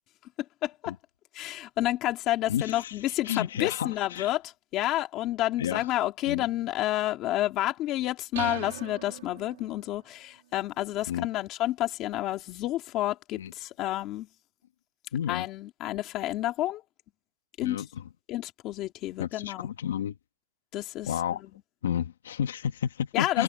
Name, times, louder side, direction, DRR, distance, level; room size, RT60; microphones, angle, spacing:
voice 1, 0.6-0.9 1.3-14.3 15.3-16.8 17.6-17.8 18.3-19.7 20.7-21.1 23.1-23.4, left 15 dB, 25° left, 2.6 m, -30 dB
voice 2, 2.5-4.3 5.6-5.9 6.3-6.4 11.1-11.3 13.4-13.5 15.1-15.5 17.6-18.0 19.2-20.1 21.1-21.4 21.8-23.4, left 9 dB, 85° left, 1.8 m, -31 dB
sound 1, 8.4-10.0, right 13 dB, 60° right, 3.7 m, -39 dB
supercardioid pair, 180°, 0 cm